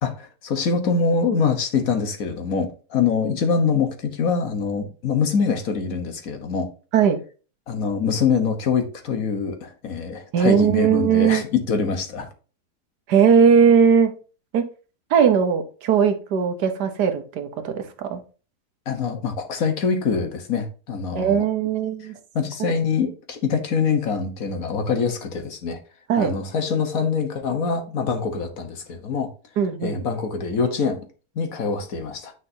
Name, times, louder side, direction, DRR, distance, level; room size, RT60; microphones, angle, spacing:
voice 1, 0.0-6.7 7.7-12.3 18.9-21.5 22.0-22.1 22.3-25.8 26.2-29.3 29.8-31.1 31.3-32.3, left 5 dB, 60° left, 1.6 m, -24 dB
voice 2, 10.3-11.4 13.1-14.1 14.5-14.6 15.1-18.2 21.1-22.1 22.6-22.7 26.1-26.3 29.6-30.0, right 7 dB, 80° right, 1.6 m, -19 dB
9.6 x 5.5 x 2.8 m
omnidirectional pair, 1.7 m